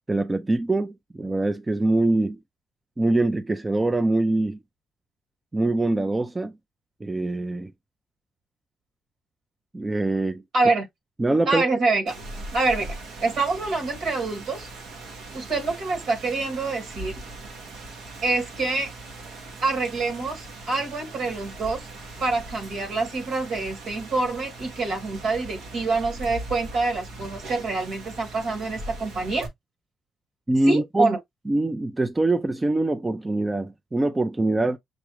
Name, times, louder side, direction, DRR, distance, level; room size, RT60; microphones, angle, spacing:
voice 1, 0.1-2.4 3.0-4.6 5.5-6.6 7.0-7.7 9.7-10.4 11.2-11.6 30.5-31.1 31.5-34.8, right 2 dB, 20° right, 0.4 m, -23 dB
voice 2, 10.5-10.9 11.5-12.2 12.5-14.7 15.3-17.2 18.2-18.9 19.6-21.9 22.2-29.5 30.7-31.2, right 3 dB, 70° right, 2.3 m, -26 dB
Rain, 12.1-29.5, right 2 dB, 90° right, 1.5 m, -40 dB
6.2 x 2.3 x 3.1 m
cardioid pair, 90°, 0 cm